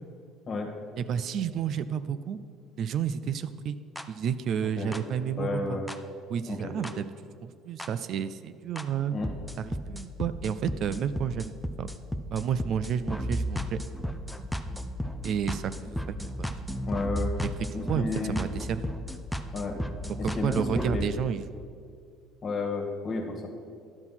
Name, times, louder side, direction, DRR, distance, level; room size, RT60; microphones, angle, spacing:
voice 1, 1.0-2.4 2.8-3.8 4.1-5.8 6.3-7.1 7.4-9.1 9.6-11.5 11.8-11.9 12.3-13.8 15.2-16.7 17.9-18.9 20.2-21.4, right 8 dB, 55° right, 13 dB, 0.4 m, -31 dB
sound 1, 4.0-4.1 4.9-5.0 5.9-6.0 6.8-6.9 7.8-7.9 8.8-8.9 9.2-21.0, equal, ahead, 0.5 m, -34 dB
voice 2, 5.4-5.9 6.5-6.8 9.1-9.3 16.9-17.3 17.7-18.4 19.5-19.8 20.2-21.1 22.4-23.5, left 3 dB, 40° left, 2 dB, 1.6 m, -32 dB
11.0 x 6.0 x 5.7 m, 2.3 s
cardioid pair, 115°, 0 cm